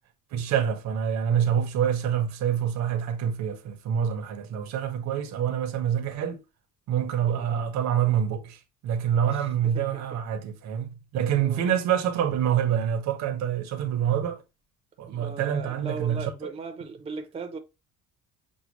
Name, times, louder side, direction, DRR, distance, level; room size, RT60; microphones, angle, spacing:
voice 1, 0.3-6.4 6.9-14.4 15.0-16.5, right 9 dB, 60° right, 0.8 m, -26 dB
voice 2, 9.3-10.2 11.4-11.6 15.1-17.6, right 4 dB, 20° right, 0.6 m, -38 dB
6.2 x 2.2 x 3.0 m
cardioid pair, 170°, 31 cm